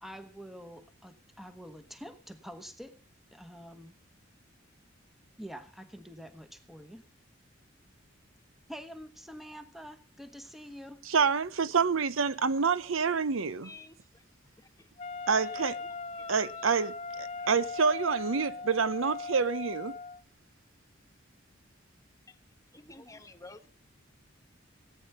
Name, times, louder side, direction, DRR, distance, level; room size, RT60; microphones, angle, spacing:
voice 1, 0.0-3.0 3.3-3.9 5.4-7.0 8.7-11.1, equal, ahead, 1.0 m, -46 dB
voice 2, 11.1-13.7 15.3-15.8 16.3-20.0, right 5 dB, 85° right, 0.8 m, -27 dB
voice 3, 13.6-14.2 14.6-14.9 15.2-15.4 16.2-16.3 16.6-16.7 17.4-17.5 22.3-22.4 22.7-23.7, left 3 dB, 15° left, 1.2 m, -51 dB
Wind instrument woodwind instrument, 15.0-20.2, left 4 dB, 35° left, 0.7 m, -39 dB
18.0 x 9.2 x 5.4 m
head